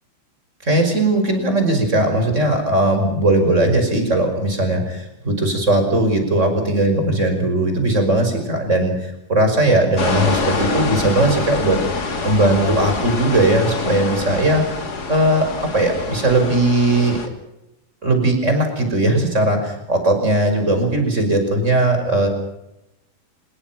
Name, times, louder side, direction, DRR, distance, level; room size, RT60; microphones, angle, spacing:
voice 1, 0.6-14.6 15.1-17.2 18.0-22.3, right 1 dB, 15° right, 6 dB, 5.4 m, -18 dB
sound 1, 10.0-17.3, left 4 dB, 35° left, 1.6 m, -26 dB
26.5 x 21.5 x 6.0 m, 0.88 s
omnidirectional pair, 5.5 m